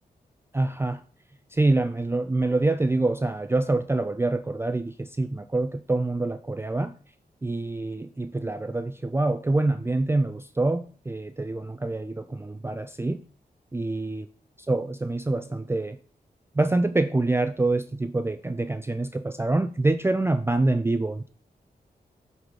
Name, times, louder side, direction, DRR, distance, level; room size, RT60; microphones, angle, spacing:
voice 1, 0.5-1.0 1.5-6.9 7.4-13.2 13.7-14.3 14.7-16.0 16.6-21.3, right 2 dB, 15° right, 10 dB, 0.4 m, -26 dB
8.2 x 4.0 x 4.8 m, 0.43 s
wide cardioid pair, 90°, 16 cm